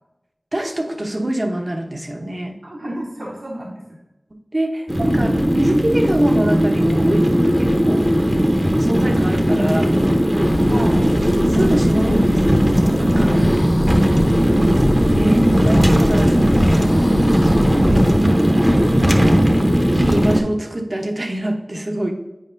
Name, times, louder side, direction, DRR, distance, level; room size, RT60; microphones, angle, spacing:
voice 1, 0.5-2.6 4.5-8.1 8.7-9.9 11.5-13.4 15.1-17.0 17.4-18.4 19.9-22.1, right 1 dB, 40° right, 3 dB, 1.0 m, -25 dB
voice 2, 2.6-3.8 4.7-4.8 10.6-11.2 19.0-19.5, right 1 dB, 60° right, -5 dB, 1.3 m, -31 dB
sound 1, 4.9-20.4, equal, 10° right, 0.9 m, -16 dB
sound 2, 10.4-18.2, left 2 dB, 60° left, 0.3 m, -28 dB
9.6 x 4.8 x 2.7 m, 1.0 s
wide cardioid pair, 45°, 0 cm